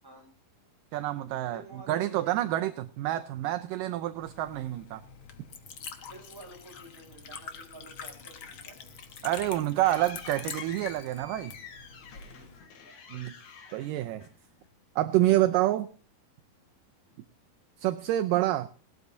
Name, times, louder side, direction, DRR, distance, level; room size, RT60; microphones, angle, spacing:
voice 1, 0.9-1.6 1.9-5.0 9.2-11.5 13.1-13.3 13.7-14.3 15.0-15.9 17.8-18.7, right 14 dB, 80° right, 10 dB, 2.0 m, -27 dB
voice 2, 1.5-2.7 6.1-8.9 12.3-12.7 17.0-17.2, right 2 dB, 5° right, 0 dB, 5.4 m, -51 dB
Liquid, 4.0-12.6, left 6 dB, 65° left, 1.2 m, -45 dB
sound 1, 8.8-14.7, left 6 dB, 90° left, 4.2 m, -48 dB
19.0 x 13.0 x 2.7 m, 0.40 s
omnidirectional pair, 4.4 m